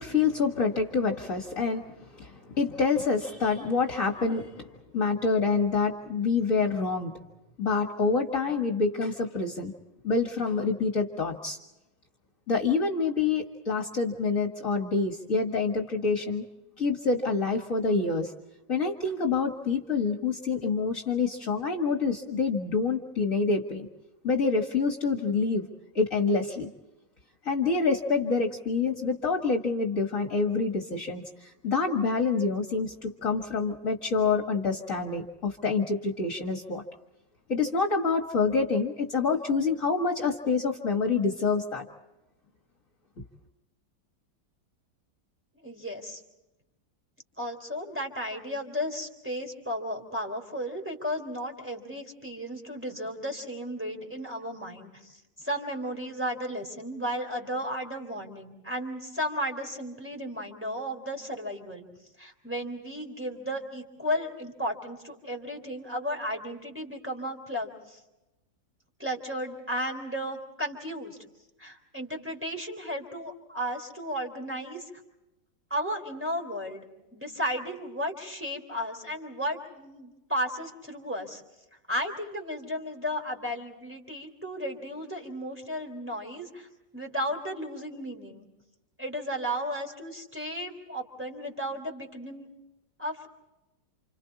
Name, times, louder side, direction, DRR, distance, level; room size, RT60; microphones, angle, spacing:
voice 1, 0.0-4.7 4.9-7.1 7.6-9.7 10.0-11.6 12.5-16.4 16.8-18.3 18.7-23.9 24.2-25.6 25.9-26.7 27.4-36.8 37.5-41.8, left 4 dB, 50° left, 3 dB, 2.1 m, -27 dB
voice 2, 45.6-46.2 47.4-61.9 62.2-68.0 69.0-71.2 71.6-74.9 75.7-76.9 77.1-81.4 81.9-86.7 86.9-88.5 89.0-92.5 93.0-93.3, equal, 5° right, 1 dB, 3.6 m, -34 dB
29.5 x 28.5 x 4.2 m, 0.98 s
omnidirectional pair, 1.9 m